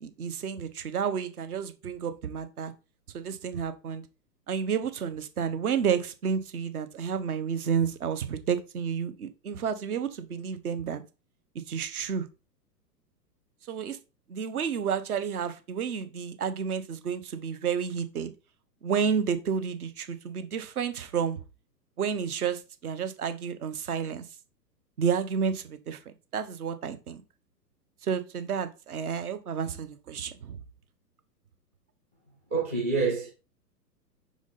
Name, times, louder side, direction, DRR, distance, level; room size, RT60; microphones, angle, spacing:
voice 1, 0.0-2.7 3.1-4.0 4.5-11.0 11.7-12.3 13.7-14.0 14.3-18.3 18.8-21.4 22.0-24.2 25.0-26.0 26.3-27.2 28.0-30.6, right 7 dB, 60° right, 1.2 m, -30 dB
voice 2, 32.5-33.3, right 4 dB, 10° right, 0.3 m, -27 dB
5.1 x 4.9 x 4.0 m
figure-of-eight pair, 120°, 50 cm